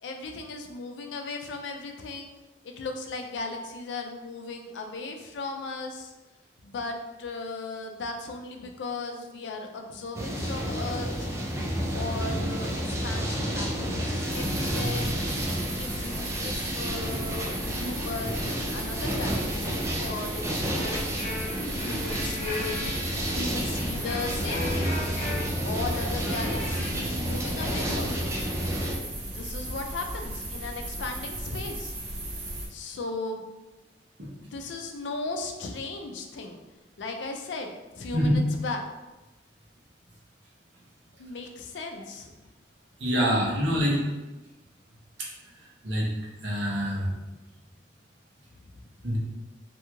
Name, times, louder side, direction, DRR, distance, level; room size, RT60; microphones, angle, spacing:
voice 1, 0.0-2.3 2.6-6.1 6.6-11.3 11.9-15.2 15.8-21.1 21.7-25.0 25.6-28.3 29.2-32.0 32.7-33.4 34.4-36.6 37.0-38.8 41.2-42.3 43.2-44.0 48.7-48.8, left 3 dB, 75° left, 3 dB, 0.4 m, -37 dB
sound 1, 10.1-28.9, equal, 15° right, 0.4 m, -31 dB
sound 2, 14.3-32.7, right 1 dB, 40° right, 0.7 m, -36 dB
sound 3, 20.8-26.9, left 2 dB, 35° left, 0.7 m, -37 dB
voice 2, 43.0-44.0 45.2-45.3 45.8-46.1 46.4-47.1 49.0-49.2, equal, 80° right, -4 dB, 0.9 m, -25 dB
2.9 x 2.7 x 2.3 m, 1.1 s
head